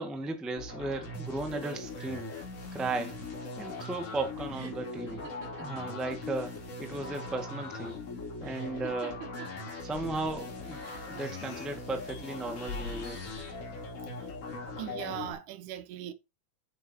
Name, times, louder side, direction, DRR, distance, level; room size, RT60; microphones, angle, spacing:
voice 1, 0.0-2.3 2.7-3.2 3.6-5.3 5.6-8.0 8.4-9.2 9.8-13.2, right 2 dB, ahead, 1.0 m, -36 dB
sound 1, 0.6-15.3, left 2 dB, 50° left, 3.8 m, -40 dB
sound 2, 2.8-6.4 6.6-7.3 8.4-9.6 10.6-11.2, right 6 dB, 40° right, 4.9 m, -48 dB
sound 3, 9.9-11.5 11.9-14.9, left 3 dB, 85° left, 1.0 m, -46 dB
voice 2, 14.8-16.1, right 11 dB, 80° right, 2.4 m, -39 dB
9.8 x 7.7 x 2.9 m
omnidirectional pair, 3.5 m